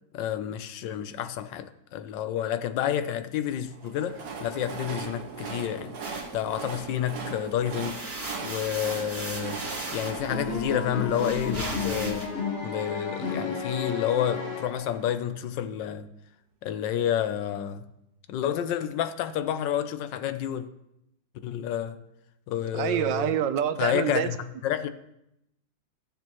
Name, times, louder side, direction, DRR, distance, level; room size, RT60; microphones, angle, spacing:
voice 1, 0.1-5.9 6.3-8.0 8.4-9.6 9.9-12.2 12.6-16.1 16.6-17.8 18.3-20.6 21.4-22.0 22.5-23.3 23.8-24.4 24.6-24.9, left 10 dB, 75° left, 10 dB, 1.2 m, -29 dB
Train, 3.7-11.8, right 5 dB, 60° right, 1.5 m, -39 dB
sound 1, 6.0-7.2 7.6-12.3, right 2 dB, 40° right, 2.2 m, -38 dB
sound 2, 10.3-15.2, left 4 dB, 35° left, 1.4 m, -32 dB
voice 2, 22.7-24.3, right 10 dB, 80° right, 10 dB, 1.3 m, -26 dB
14.5 x 7.0 x 3.0 m, 0.83 s
omnidirectional pair, 2.0 m